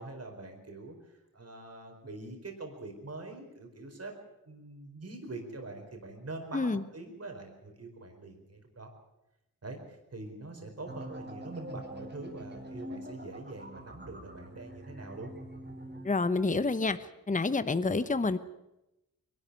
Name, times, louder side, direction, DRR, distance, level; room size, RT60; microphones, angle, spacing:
voice 1, 0.0-4.1 4.4-8.9 9.6-15.3, right 2 dB, 45° right, 3 dB, 4.6 m, -44 dB
sound 1, 10.9-16.1, equal, 30° right, 4.6 m, -45 dB
voice 2, 16.0-17.0 17.3-18.4, left 3 dB, 25° left, 13 dB, 1.0 m, -28 dB
22.5 x 12.5 x 9.7 m, 0.92 s
cardioid pair, 70°, 34 cm